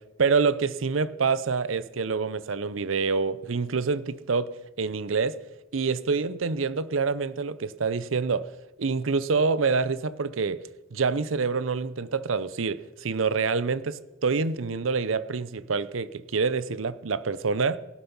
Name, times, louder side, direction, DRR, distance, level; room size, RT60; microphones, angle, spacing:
voice 1, 0.2-4.5 4.8-5.4 5.7-8.5 8.8-10.6 10.9-17.8, right 4 dB, 90° right, 0.7 m, -26 dB
17.0 x 11.5 x 5.5 m
head